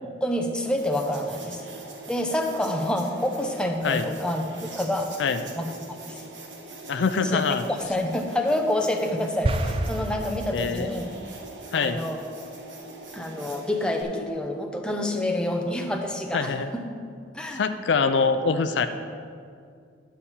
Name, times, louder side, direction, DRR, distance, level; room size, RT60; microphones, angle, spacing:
voice 1, 0.0-1.6 2.1-4.4 4.7-5.1 5.5-6.2 7.2-11.1 11.7-12.2 13.1-16.8 17.3-17.6, left 1 dB, 5° left, 2 dB, 0.7 m, -28 dB
sound 1, 0.8-14.0, right 2 dB, 90° right, 1.3 m, -43 dB
voice 2, 6.9-7.7 10.5-10.9 11.7-12.0 16.3-16.7 17.5-18.9, left 5 dB, 75° left, 9 dB, 0.4 m, -24 dB
sound 2, 9.4-11.1, right 1 dB, 30° right, 0.4 m, -28 dB
10.5 x 4.2 x 7.1 m, 2.2 s
head